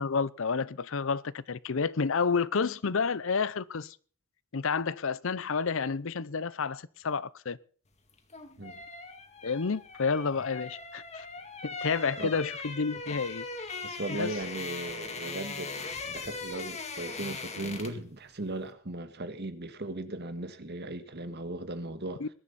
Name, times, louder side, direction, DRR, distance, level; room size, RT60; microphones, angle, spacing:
voice 1, 0.0-4.0 4.5-7.6 9.4-11.3 11.8-13.4 14.1-14.4 22.2-22.3, left 5 dB, 65° left, 0.7 m, -30 dB
sound 1, 8.1-18.1 18.4-18.6, left 4 dB, 30° left, 2.1 m, -40 dB
voice 2, 13.8-22.2, right 2 dB, 50° right, 1.7 m, -37 dB
21.0 x 11.0 x 4.2 m
head